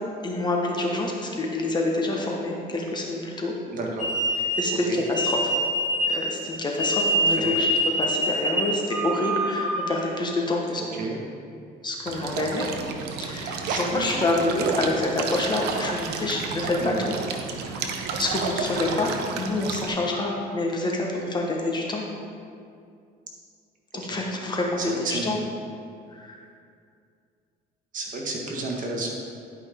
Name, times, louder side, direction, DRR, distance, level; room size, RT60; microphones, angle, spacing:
voice 1, 0.2-3.5 4.4-5.5 6.1-7.7 8.0-11.1 11.8-12.7 13.2-16.9 17.8-22.0 23.9-25.4 26.1-26.4, left 2 dB, 25° left, -1 dB, 1.2 m, -27 dB
voice 2, 3.7-4.1 4.9-5.0 7.4-7.6 11.0-11.2 13.6-14.2 16.8-17.0 24.0-24.2 24.9-25.4 27.9-29.1, right 3 dB, 50° right, -1 dB, 1.5 m, -31 dB
sound 1, 4.0-10.0, equal, ahead, 2.0 m, -25 dB
sound 2, 12.1-19.9, right 5 dB, 75° right, 0.8 m, -31 dB
11.0 x 5.3 x 3.6 m, 2.4 s
cardioid pair, 110°, 17 cm